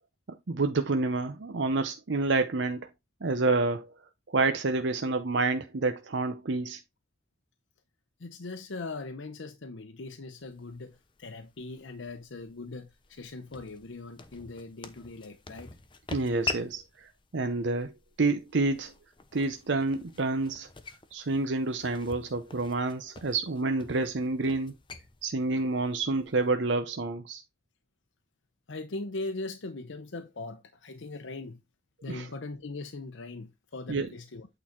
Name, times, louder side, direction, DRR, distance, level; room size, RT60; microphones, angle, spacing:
voice 1, 0.5-2.9 3.2-3.9 4.3-6.8 16.1-17.9 18.2-18.9 19.3-20.7 21.1-24.7 25.2-27.4 32.1-32.3 33.9-34.1, right 3 dB, 75° right, 0.7 m, -28 dB
voice 2, 8.2-15.8 25.5-25.6 28.7-31.6 32.0-34.5, left 3 dB, 85° left, 0.7 m, -40 dB
sound 1, 10.4-26.5, left 3 dB, 25° left, 0.7 m, -45 dB
8.7 x 3.9 x 4.4 m
head